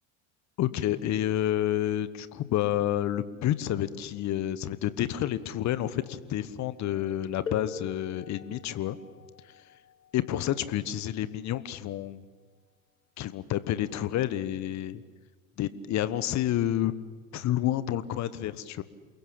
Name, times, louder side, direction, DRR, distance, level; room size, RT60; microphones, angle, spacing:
voice 1, 0.6-9.0 10.1-12.2 13.2-15.0 15.6-16.9 17.3-18.8, left 12 dB, 40° left, 15 dB, 1.4 m, -29 dB
sound 1, 7.5-12.9 13.9-14.0 14.9-15.1, left 5 dB, 85° left, 1.9 m, -45 dB
28.5 x 22.0 x 8.8 m, 1.4 s
figure-of-eight pair, 70°, 41 cm